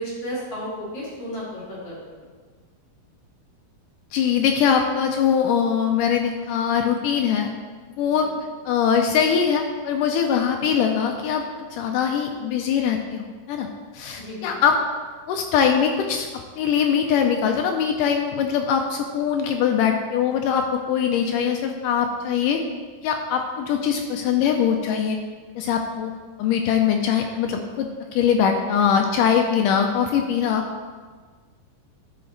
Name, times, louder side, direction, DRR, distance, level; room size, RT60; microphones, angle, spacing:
voice 1, 0.0-2.2 14.2-14.6, equal, 45° left, -8 dB, 3.2 m, -33 dB
voice 2, 4.1-7.5 8.0-8.3 8.7-13.7 13.9-14.8 15.3-22.6 23.0-25.2 25.6-26.1 26.4-30.6, left 7 dB, 80° left, 4 dB, 1.9 m, -22 dB
11.5 x 5.9 x 3.9 m, 1.5 s
omnidirectional pair, 4.3 m